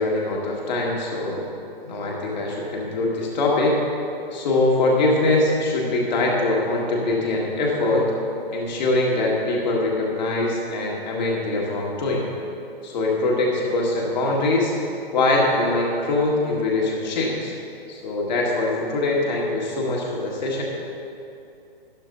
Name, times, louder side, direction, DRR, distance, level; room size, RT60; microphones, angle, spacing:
voice 1, 0.0-1.5 1.8-3.8 4.3-8.1 8.5-12.3 12.8-14.7 15.1-17.5 17.9-20.6, left 2 dB, 50° left, -2 dB, 1.7 m, -23 dB
12.5 x 11.5 x 2.6 m, 2.6 s
figure-of-eight pair, 120°, 29 cm